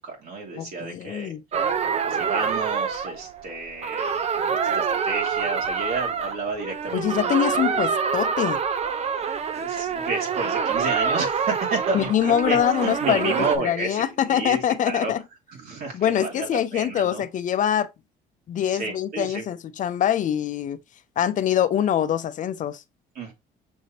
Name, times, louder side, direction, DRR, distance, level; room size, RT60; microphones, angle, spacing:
voice 1, 0.0-1.3 2.0-4.1 4.5-7.4 9.5-15.1 15.5-17.2 18.7-19.4 23.2-23.3, right 3 dB, 65° right, 2.0 m, -31 dB
voice 2, 0.6-1.4 6.9-8.6 11.9-15.2 15.9-17.9 18.5-20.8 21.2-22.8, left 10 dB, 50° left, 0.6 m, -24 dB
sound 1, 1.5-13.6, right 6 dB, 40° right, 0.7 m, -26 dB
6.3 x 2.9 x 2.7 m
cardioid pair, 110°, 17 cm